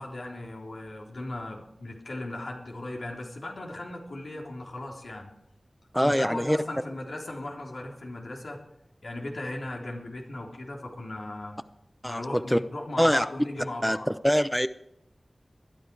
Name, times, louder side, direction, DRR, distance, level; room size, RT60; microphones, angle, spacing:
voice 1, 0.0-5.3 6.0-8.6 9.0-11.6 12.0-14.1, left 1 dB, 85° left, -1 dB, 3.4 m, -37 dB
voice 2, 5.9-6.6 12.0-12.6 13.0-13.3 13.8-14.7, equal, 5° left, 12 dB, 0.6 m, -24 dB
20.0 x 11.5 x 4.7 m, 0.79 s
wide cardioid pair, 65°, 0 cm